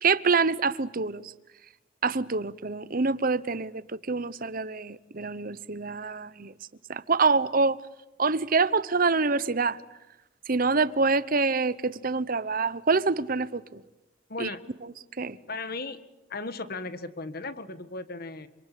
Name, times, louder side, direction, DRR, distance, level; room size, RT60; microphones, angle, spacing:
voice 1, 0.0-1.3 2.0-6.5 6.9-7.8 8.2-9.8 10.5-13.8 14.4-14.5 15.2-15.4, right 4 dB, 45° right, 0.9 m, -26 dB
voice 2, 14.3-14.6 15.5-16.0 16.3-18.5, left 3 dB, 50° left, 1.6 m, -36 dB
27.0 x 26.0 x 8.5 m
head